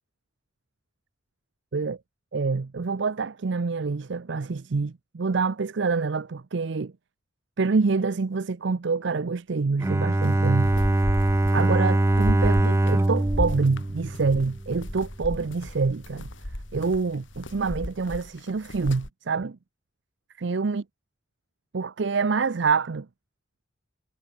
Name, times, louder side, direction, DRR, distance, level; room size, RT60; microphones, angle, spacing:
voice 1, 2.3-6.9 7.6-10.7 11.5-16.3 16.7-19.6 20.4-20.8 21.7-23.1, right 4 dB, 65° right, 0.6 m, -26 dB
Bowed string instrument, 9.8-14.8, right 1 dB, 15° right, 0.4 m, -23 dB
sound 1, 10.2-19.1, left 1 dB, 75° left, 4.0 m, -34 dB
head